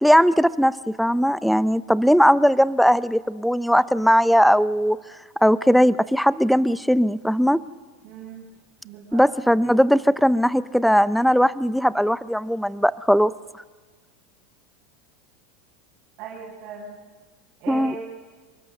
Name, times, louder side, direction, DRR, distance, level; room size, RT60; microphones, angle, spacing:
voice 1, 0.0-5.0 5.4-7.6 9.1-13.3 17.7-17.9, equal, ahead, 16 dB, 0.6 m, -19 dB
voice 2, 8.0-8.4 8.8-9.2 16.2-17.0 17.6-18.0, right 6 dB, 50° right, -5 dB, 7.5 m, -37 dB
26.5 x 23.5 x 6.6 m, 1.4 s
supercardioid pair, 120°, 0 cm